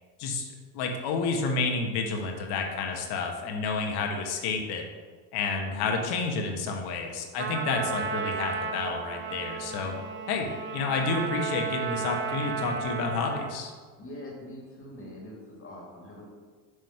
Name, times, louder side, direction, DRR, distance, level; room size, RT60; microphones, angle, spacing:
voice 1, 0.2-4.8 5.3-9.9 10.3-13.7, left 4 dB, 50° left, 2 dB, 1.2 m, -30 dB
Trumpet, 7.4-13.6, right 6 dB, 25° right, 0.5 m, -34 dB
voice 2, 14.0-16.2, left 1 dB, 25° left, -2 dB, 1.9 m, -43 dB
6.5 x 3.0 x 5.6 m, 1.5 s
hypercardioid pair, 95°, 48 cm